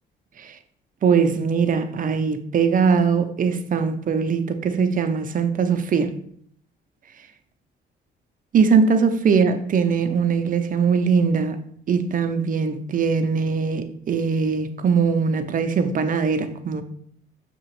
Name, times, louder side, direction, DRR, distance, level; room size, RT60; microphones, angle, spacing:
voice 1, 1.0-6.1 8.5-11.6 11.9-16.8, right 5 dB, 45° right, 0.5 m, -21 dB
6.0 x 2.8 x 3.0 m
cardioid pair, 90°, 20 cm